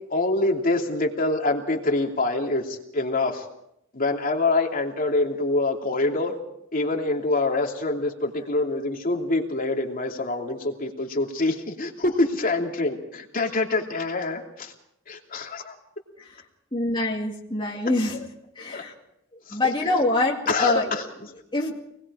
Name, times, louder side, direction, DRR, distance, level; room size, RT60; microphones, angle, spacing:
voice 1, 0.1-3.5 3.9-6.4 6.7-14.7 15.1-15.8 18.6-18.8 19.5-19.6 20.5-21.0, left 2 dB, 45° left, 1 dB, 2.9 m, -25 dB
voice 2, 16.7-18.2 18.6-18.9 19.5-20.9 21.5-21.8, left 2 dB, 25° left, -2 dB, 2.3 m, -24 dB
27.0 x 20.5 x 4.9 m, 0.77 s
head